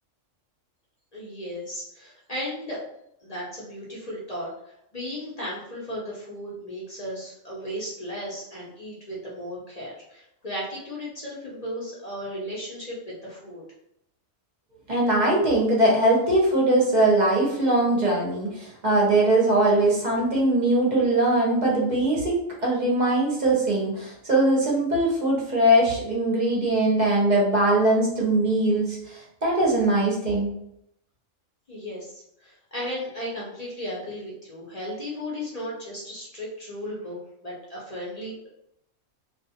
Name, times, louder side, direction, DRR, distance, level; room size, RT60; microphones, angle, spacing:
voice 1, 1.1-2.8 3.2-4.5 4.9-12.9 13.2-13.6 31.7-38.5, equal, 40° left, -6 dB, 0.6 m, -35 dB
voice 2, 14.9-22.4 22.6-30.5, right 1 dB, 45° right, -4 dB, 0.7 m, -21 dB
2.4 x 2.4 x 2.7 m, 0.77 s
omnidirectional pair, 1.4 m